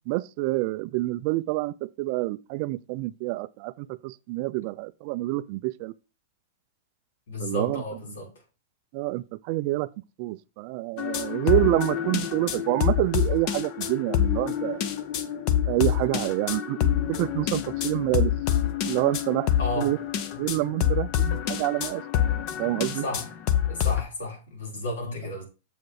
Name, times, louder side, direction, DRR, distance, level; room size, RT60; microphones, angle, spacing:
voice 1, 0.1-5.9 7.4-7.8 8.9-9.9 10.2-14.8 15.7-18.3 18.8-19.5 19.8-20.0 20.4-22.0 22.6-23.0, right 20 dB, 35° right, 0.3 m, -27 dB
voice 2, 7.3-8.3 19.6-20.0 23.0-23.3 23.7-25.4, left 1 dB, 70° left, 3.9 m, -33 dB
sound 1, 11.0-24.0, left 10 dB, 30° left, 0.6 m, -27 dB
7.2 x 4.8 x 4.7 m
supercardioid pair, 175°, 0 cm